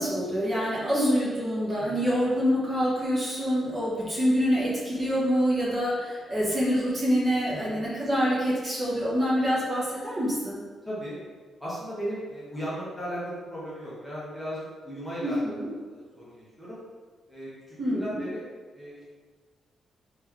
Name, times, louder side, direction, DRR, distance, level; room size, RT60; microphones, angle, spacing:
voice 1, 0.0-10.6 15.2-15.7 17.8-18.2, equal, 25° right, -8 dB, 1.1 m, -26 dB
voice 2, 7.5-7.8 10.8-11.2 11.6-15.5 15.9-16.8 17.3-18.5 18.7-19.0, equal, 5° left, -10 dB, 0.9 m, -36 dB
3.2 x 3.2 x 3.5 m, 1.5 s
wide cardioid pair, 160°, 0 cm